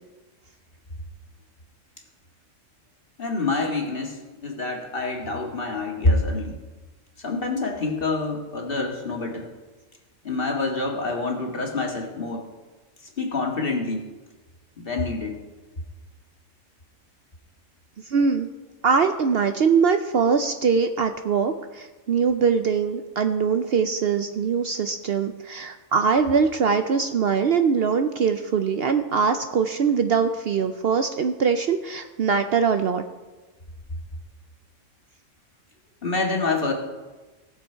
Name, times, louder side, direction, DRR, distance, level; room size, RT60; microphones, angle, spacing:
voice 1, 3.2-6.6 7.2-9.5 10.2-12.5 13.2-14.1 14.8-15.4 36.0-36.7, left 3 dB, 45° left, 1 dB, 1.9 m, -26 dB
voice 2, 18.1-18.5 18.8-33.0, right 5 dB, 60° right, 8 dB, 0.7 m, -22 dB
19.0 x 7.0 x 4.5 m, 1.2 s
omnidirectional pair, 1.3 m